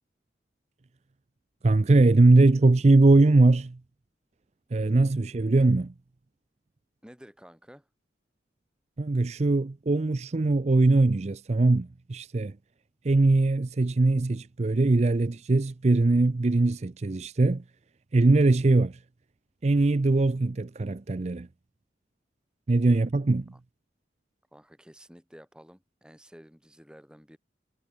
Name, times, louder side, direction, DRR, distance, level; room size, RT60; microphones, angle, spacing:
voice 1, 1.6-3.8 4.7-5.9 9.0-12.6 13.0-17.6 18.1-19.0 19.6-21.5 22.7-23.5, right 2 dB, 40° right, 0.5 m, -21 dB
voice 2, 7.0-7.9 22.8-23.0 23.5-23.6 24.5-27.4, equal, 5° right, 2.8 m, -52 dB
head